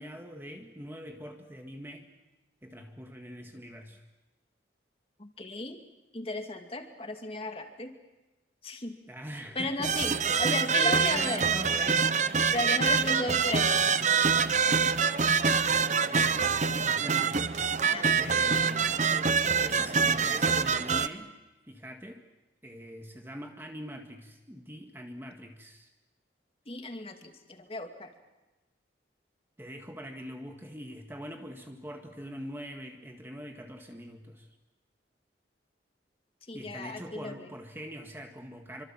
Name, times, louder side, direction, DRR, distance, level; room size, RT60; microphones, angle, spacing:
voice 1, 0.0-2.1 2.6-4.0 9.1-12.2 14.4-14.9 15.4-17.8 18.1-21.4 21.6-22.2 22.6-25.9 29.6-34.5 36.5-38.8, equal, 15° right, 3 dB, 1.8 m, -43 dB
voice 2, 5.2-5.8 6.1-7.9 8.6-9.0 9.6-11.5 12.5-13.8 17.8-18.1 26.7-28.1 36.5-37.5, left 2 dB, 30° left, 5 dB, 2.4 m, -35 dB
sound 1, 9.8-21.1, right 5 dB, 40° right, 0.9 m, -25 dB
27.5 x 25.0 x 7.5 m, 1.1 s
head